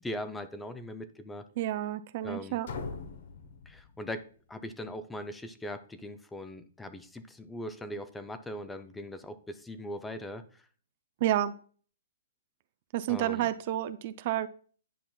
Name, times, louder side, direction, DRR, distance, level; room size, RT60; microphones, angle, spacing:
voice 1, 0.0-1.4 2.2-2.6 3.7-10.7 13.1-13.5, left 1 dB, 5° left, 10 dB, 0.5 m, -40 dB
voice 2, 1.6-2.7 11.2-11.5 12.9-14.5, right 13 dB, 45° right, 12 dB, 0.4 m, -30 dB
sound 1, 2.6-4.5, left 4 dB, 60° left, 0.9 m, -42 dB
10.0 x 5.6 x 2.3 m, 0.44 s
hypercardioid pair, 135°, 0 cm